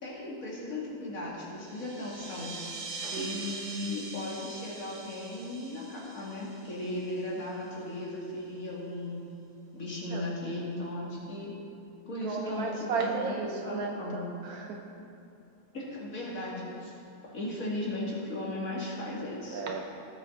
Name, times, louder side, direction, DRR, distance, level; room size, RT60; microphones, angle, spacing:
voice 1, 0.0-2.5 3.1-9.2 9.7-11.5 12.1-14.2 15.7-16.9 17.2-19.6, left 1 dB, 65° left, -6 dB, 2.9 m, -36 dB
sound 1, 1.5-7.7, right 3 dB, 35° right, 0.8 m, -43 dB
voice 2, 12.2-14.8 19.5-19.8, right 4 dB, 80° right, 1 dB, 1.3 m, -34 dB
18.5 x 6.7 x 3.9 m, 2.7 s
omnidirectional pair, 1.6 m